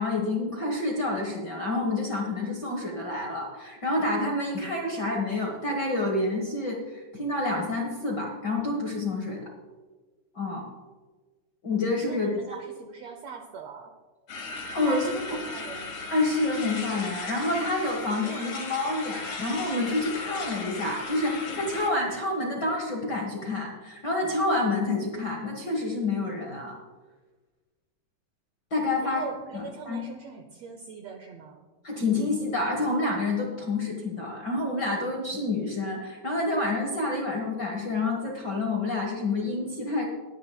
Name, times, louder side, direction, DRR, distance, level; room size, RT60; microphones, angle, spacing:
voice 1, 0.0-9.5 10.3-10.7 11.6-12.4 14.7-15.1 16.1-26.7 28.7-29.2 29.5-30.0 31.8-40.0, left 2 dB, 55° left, 0 dB, 1.2 m, -28 dB
voice 2, 12.1-13.9 14.8-16.0 29.0-31.6, right 5 dB, 75° right, 5 dB, 1.5 m, -40 dB
sound 1, 14.3-21.9, left 4 dB, 75° left, 3.7 m, -37 dB
21.0 x 9.9 x 2.2 m, 1.3 s
omnidirectional pair, 3.9 m